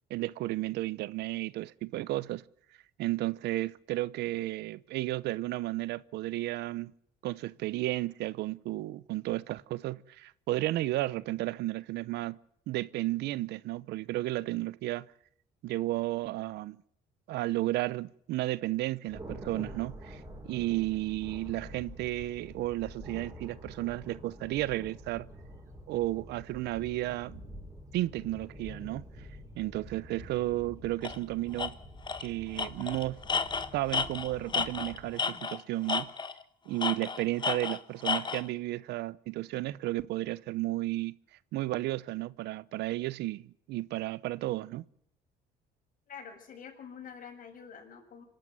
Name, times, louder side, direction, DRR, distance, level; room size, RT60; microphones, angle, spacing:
voice 1, 0.1-2.4 3.0-6.9 7.2-12.4 12.7-15.1 15.6-16.8 17.3-25.3 25.9-27.4 27.9-29.3 29.6-31.8 32.2-33.2 33.7-36.1 36.7-41.2 41.5-44.9, right 17 dB, 80° right, 0.8 m, -33 dB
Thunder, 19.1-35.1, equal, 20° right, 7.7 m, -47 dB
Tools, 31.0-31.2 31.6-31.7 32.1-32.3 32.6-35.6 35.9-36.4 36.8-38.4, left 5 dB, 25° left, 1.4 m, -32 dB
voice 2, 46.1-48.2, left 7 dB, 55° left, 7.2 m, -47 dB
26.0 x 12.0 x 9.4 m
cardioid pair, 110°, 17 cm